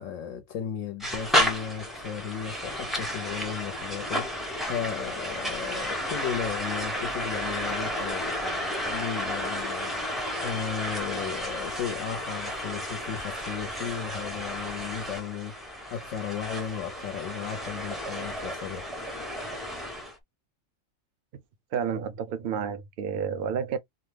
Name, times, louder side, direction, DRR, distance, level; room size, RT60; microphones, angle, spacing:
voice 1, 0.0-18.8, left 8 dB, 70° left, 0.9 m, -35 dB
sound 1, 1.0-20.1, equal, ahead, 0.4 m, -32 dB
voice 2, 21.7-23.8, right 7 dB, 55° right, 0.6 m, -30 dB
2.7 x 2.1 x 3.2 m
omnidirectional pair, 1.4 m